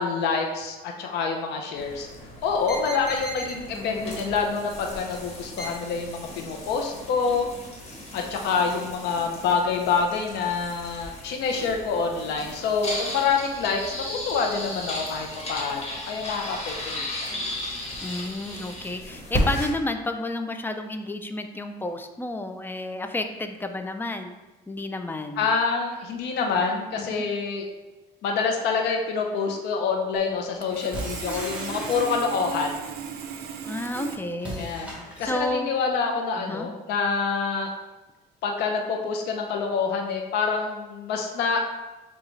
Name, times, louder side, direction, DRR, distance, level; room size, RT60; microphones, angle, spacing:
voice 1, 0.0-2.1 2.4-7.5 8.1-13.8 14.1-16.7 17.1-17.3 25.4-27.6 28.2-32.7 34.6-37.7 38.4-41.6, left 5 dB, 80° left, 2 dB, 0.7 m, -26 dB
sound 1, 1.8-19.7, left 1 dB, 40° left, 1.4 m, -35 dB
voice 2, 3.7-4.2 18.0-24.4 24.7-25.5 27.0-27.2 33.6-34.9 35.2-35.7 36.4-36.7, left 2 dB, 10° left, 6 dB, 0.4 m, -31 dB
Sawing, 30.2-30.3 30.6-34.2, right 7 dB, 65° right, 0.5 m, -36 dB
sound 2, 30.9-32.6 34.4-35.5, right 1 dB, 5° right, 1.1 m, -37 dB
7.1 x 2.4 x 3.2 m, 1.1 s
cardioid pair, 110°, 17 cm